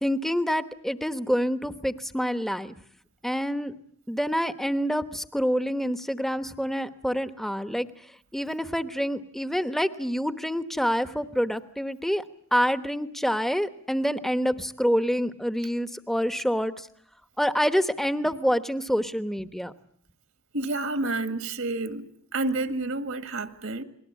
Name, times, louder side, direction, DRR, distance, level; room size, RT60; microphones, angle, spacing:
voice 1, 0.0-2.7 3.2-3.7 4.1-7.9 8.3-12.2 12.5-16.7 17.4-19.7, equal, ahead, 10 dB, 1.1 m, -27 dB
voice 2, 20.5-22.0 22.3-23.8, right 2 dB, 65° right, 8 dB, 1.9 m, -29 dB
30.0 x 21.5 x 8.3 m, 0.65 s
head